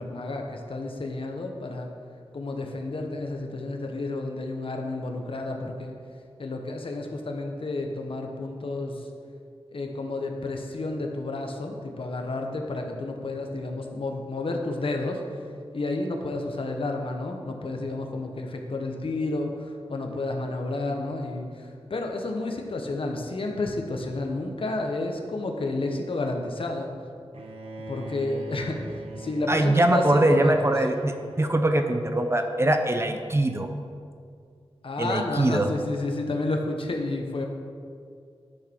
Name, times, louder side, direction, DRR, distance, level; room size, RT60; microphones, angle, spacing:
voice 1, 0.0-1.9 2.3-5.9 6.4-9.1 9.7-15.2 15.7-26.9 27.9-28.8 29.2-30.7 34.8-37.5, left 2 dB, 60° left, 2 dB, 1.1 m, -31 dB
Bowed string instrument, 27.3-33.4, right 1 dB, 75° right, 0.9 m, -42 dB
voice 2, 29.5-33.7 35.0-35.7, right 1 dB, 25° right, 6 dB, 0.6 m, -22 dB
11.5 x 6.3 x 4.6 m, 2.3 s
wide cardioid pair, 100°, 10 cm